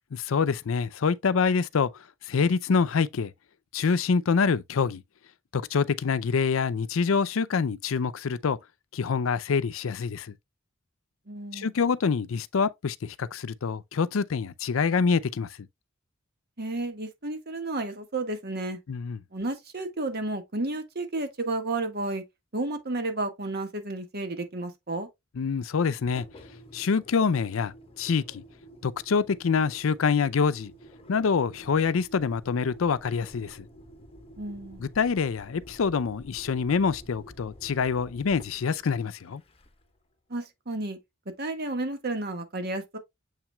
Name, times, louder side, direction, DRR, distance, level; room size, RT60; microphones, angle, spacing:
voice 1, 0.1-1.9 2.3-3.3 3.7-5.0 5.5-8.6 8.9-10.3 11.5-15.5 18.9-19.2 25.4-26.2 26.7-27.7 28.0-28.4 28.8-30.7 31.1-33.6 34.8-39.4, left 5 dB, 80° left, 0.5 m, -26 dB
voice 2, 11.3-11.7 16.6-18.8 19.3-22.2 22.5-25.1 34.4-34.8 40.3-41.0 41.4-43.0, right 2 dB, 55° right, 1.6 m, -32 dB
Engine, 26.0-40.0, equal, 30° left, 1.0 m, -50 dB
7.3 x 5.9 x 2.3 m
head